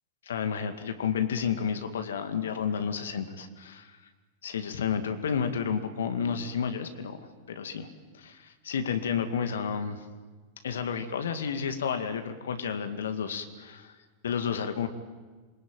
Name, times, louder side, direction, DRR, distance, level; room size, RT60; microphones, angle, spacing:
voice 1, 0.3-4.0 4.4-7.2 7.5-7.9 8.1-10.0 10.6-14.0 14.2-14.9, left 7 dB, 65° left, 8 dB, 2.2 m, -31 dB
27.5 x 23.5 x 9.1 m, 1.4 s
figure-of-eight pair, 90°, 0 cm